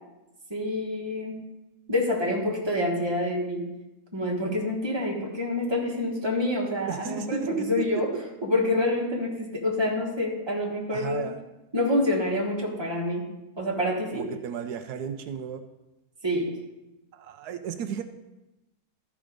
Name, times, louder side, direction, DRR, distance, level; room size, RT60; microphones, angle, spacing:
voice 1, 0.5-1.5 1.9-3.7 4.1-8.1 8.4-11.2 11.7-14.3 16.2-16.5, left 1 dB, 15° right, -2 dB, 1.6 m, -27 dB
voice 2, 6.9-8.0 10.9-11.4 14.1-15.6 17.1-18.0, right 8 dB, 85° right, 7 dB, 1.2 m, -34 dB
13.0 x 5.0 x 5.1 m, 0.99 s
omnidirectional pair, 1.7 m